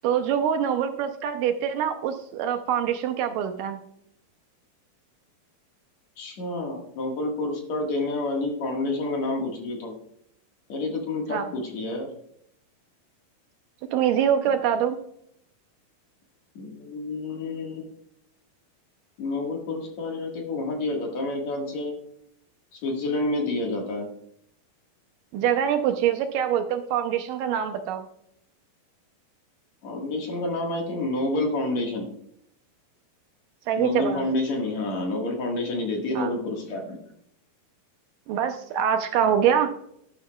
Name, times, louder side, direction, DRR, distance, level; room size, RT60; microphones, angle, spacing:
voice 1, 0.0-3.8 11.3-11.5 13.9-15.0 25.3-28.0 33.7-34.3 36.2-36.3 38.3-39.7, right 9 dB, 75° right, 7 dB, 2.1 m, -24 dB
voice 2, 6.2-10.0 10.7-12.1 16.6-17.8 19.2-22.0 22.7-24.1 29.8-32.1 33.8-37.0, left 2 dB, 55° left, 1 dB, 2.6 m, -29 dB
11.5 x 11.0 x 2.3 m, 0.70 s
omnidirectional pair, 4.2 m